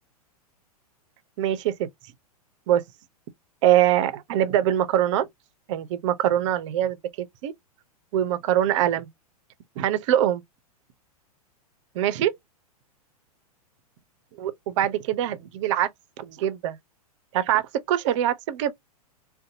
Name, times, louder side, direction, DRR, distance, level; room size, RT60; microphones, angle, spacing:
voice 1, 1.4-1.9 2.7-2.8 3.6-5.3 5.7-7.5 8.1-9.1 9.8-10.4 11.9-12.3 14.4-15.9 16.2-16.8 17.3-18.7, right 11 dB, 50° right, 0.5 m, -23 dB
2.6 x 2.2 x 2.5 m
hypercardioid pair, 110°, 20 cm